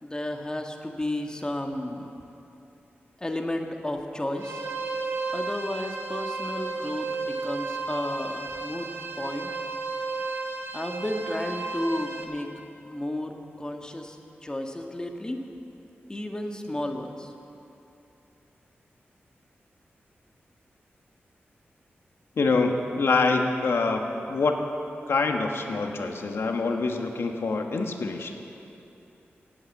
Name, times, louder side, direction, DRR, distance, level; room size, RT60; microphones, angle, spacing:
voice 1, 0.0-2.1 3.2-4.7 5.3-8.9 9.2-9.5 10.7-12.5 12.8-14.2 14.4-15.4 16.1-17.3, left 1 dB, 20° left, 3 dB, 1.6 m, -32 dB
sound 1, 4.4-12.2, right 3 dB, 75° right, 1.7 m, -33 dB
voice 2, 22.4-24.0 24.3-24.6 25.1-28.4, left 3 dB, 75° left, 4 dB, 1.4 m, -25 dB
17.0 x 8.8 x 8.5 m, 2.9 s
wide cardioid pair, 75°, 4 cm